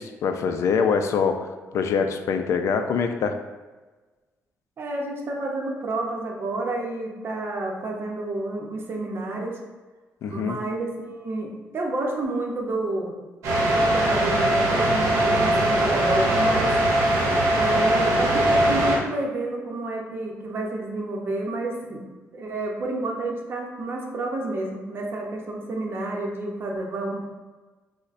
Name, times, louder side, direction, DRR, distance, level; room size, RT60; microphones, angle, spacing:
voice 1, 0.0-3.4 10.2-10.6, left 6 dB, 70° left, 7 dB, 0.3 m, -24 dB
voice 2, 4.8-9.6 10.3-13.1 13.6-16.7 17.5-22.0 22.3-27.3, right 2 dB, 50° right, 0 dB, 0.7 m, -30 dB
sound 1, 13.4-19.0, right 1 dB, 90° right, 0.9 m, -21 dB
6.4 x 2.1 x 2.5 m, 1.3 s
cardioid pair, 105°, 5 cm